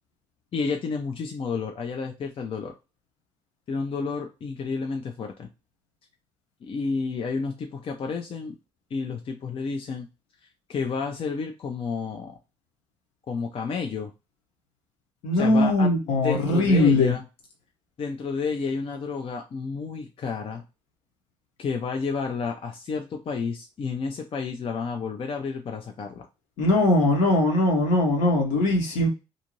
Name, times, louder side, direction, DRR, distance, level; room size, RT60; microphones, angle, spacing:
voice 1, 0.5-2.7 3.7-5.5 6.6-8.5 8.9-10.1 10.7-12.4 13.3-14.1 15.3-15.9 16.2-17.2 18.0-20.6 21.6-26.3, left 5 dB, 45° left, 0.5 m, -31 dB
voice 2, 15.2-17.1 26.6-29.1, left 2 dB, 75° left, 1.1 m, -20 dB
2.7 x 2.5 x 3.0 m
hypercardioid pair, 60°, 13 cm